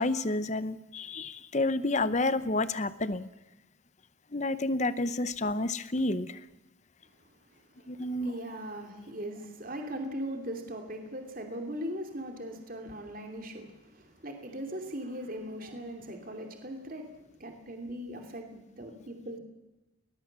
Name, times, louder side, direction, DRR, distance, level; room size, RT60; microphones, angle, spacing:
voice 1, 0.0-3.3 4.3-6.4 7.9-8.3, left 2 dB, 35° left, 0.8 m, -30 dB
voice 2, 7.6-19.4, equal, 45° right, 2.8 m, -40 dB
20.5 x 20.0 x 7.5 m
head